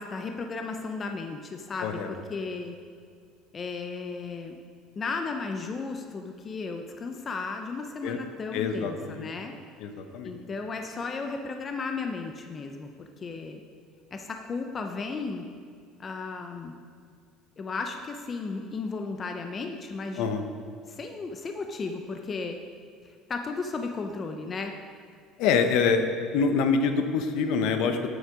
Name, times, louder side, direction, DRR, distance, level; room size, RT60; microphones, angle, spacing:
voice 1, 0.0-2.8 3.5-4.6 5.0-9.6 10.2-13.6 14.1-15.4 16.0-16.7 17.6-20.3 20.9-22.6 23.0-24.7, left 4 dB, 25° left, 4 dB, 0.5 m, -34 dB
voice 2, 8.5-9.3 9.8-10.3 20.2-20.4 25.4-28.0, left 5 dB, 65° left, 7 dB, 0.8 m, -25 dB
8.1 x 8.1 x 5.0 m, 2.1 s
cardioid pair, 160°, 0 cm